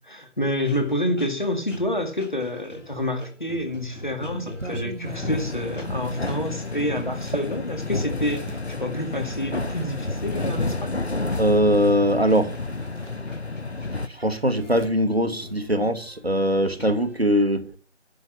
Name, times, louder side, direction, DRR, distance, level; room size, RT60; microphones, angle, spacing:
voice 1, 0.0-11.0, left 1 dB, 40° left, 2.2 m, -28 dB
sound 1, 0.6-17.2, left 1 dB, 85° left, 2.8 m, -44 dB
sound 2, 3.8-8.7 9.6-10.9 12.1-12.3 12.6-13.7 14.0-16.2, right 2 dB, 75° right, 1.2 m, -41 dB
sound 3, 5.0-14.1, left 2 dB, 60° left, 1.0 m, -30 dB
voice 2, 11.4-12.5 14.1-17.7, equal, 55° right, 1.2 m, -21 dB
10.0 x 6.2 x 8.3 m
figure-of-eight pair, 180°, 37 cm